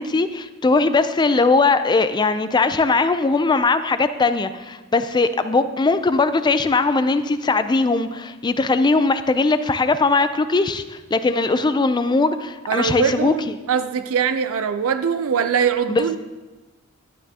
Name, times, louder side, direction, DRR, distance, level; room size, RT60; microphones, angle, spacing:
voice 1, 0.0-13.5 15.9-16.2, left 3 dB, 20° left, 11 dB, 0.3 m, -20 dB
voice 2, 12.7-16.2, right 7 dB, 65° right, 10 dB, 0.4 m, -22 dB
11.5 x 9.1 x 2.8 m, 1.2 s
head